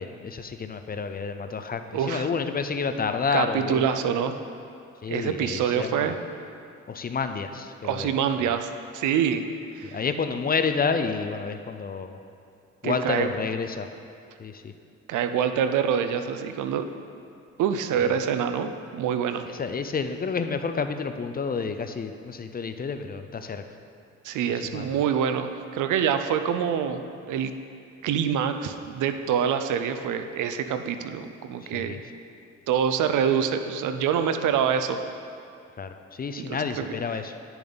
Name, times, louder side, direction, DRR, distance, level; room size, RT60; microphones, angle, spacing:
voice 1, 0.0-4.0 5.0-6.2 6.9-8.1 8.4-8.5 9.9-12.2 12.8-13.9 14.4-14.7 18.0-18.1 19.5-23.6 24.7-24.9 31.7-32.0 35.8-37.3, left 5 dB, 30° left, 8 dB, 0.5 m, -29 dB
voice 2, 1.9-2.3 3.3-4.3 5.1-6.2 7.8-9.4 9.7-10.0 12.8-13.3 15.1-16.9 17.6-19.4 24.2-27.5 28.0-32.0 32.7-35.0 36.4-36.9, right 8 dB, 80° right, 9 dB, 0.6 m, -26 dB
10.5 x 6.9 x 4.0 m, 2.5 s
cardioid pair, 90°, 30 cm